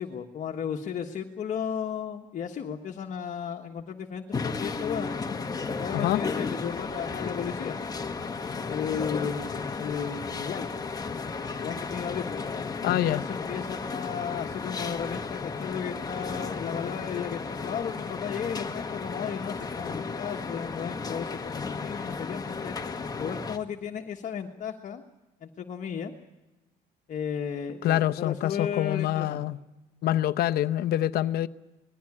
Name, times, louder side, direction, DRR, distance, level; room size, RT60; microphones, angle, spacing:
voice 1, 0.0-5.2 5.8-7.8 8.7-10.7 11.6-12.4 13.1-22.8 23.2-25.0 25.4-26.1 27.1-29.4, left 7 dB, 50° left, 1.5 m, -34 dB
sound 1, 4.3-23.6, left 4 dB, 20° left, 1.4 m, -34 dB
voice 2, 12.8-13.2 27.8-29.6 30.0-31.5, left 13 dB, 70° left, 0.8 m, -26 dB
20.5 x 16.0 x 9.8 m
cardioid pair, 110°, 17 cm